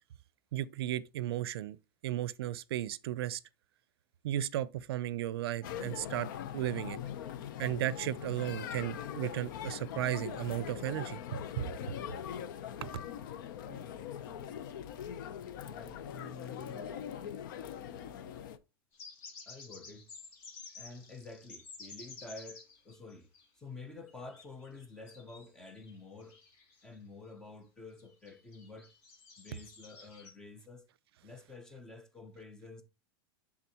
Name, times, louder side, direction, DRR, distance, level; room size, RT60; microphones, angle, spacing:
voice 1, 0.5-1.8 2.0-3.4 4.2-7.0 7.6-12.0 12.8-12.9, right 13 dB, 80° right, 0.5 m, -35 dB
sound 1, 5.6-18.6, left 9 dB, 55° left, 0.6 m, -42 dB
voice 2, 15.6-16.9 19.5-20.1 20.8-23.3 23.5-26.4 26.8-28.9 29.4-30.9 31.2-32.8, left 3 dB, 5° left, 0.6 m, -49 dB
sound 2, 18.9-23.5 24.1-27.0 27.3-27.4 28.0-30.3, left 4 dB, 40° left, 1.9 m, -52 dB
10.5 x 3.8 x 2.9 m
supercardioid pair, 175°, 13 cm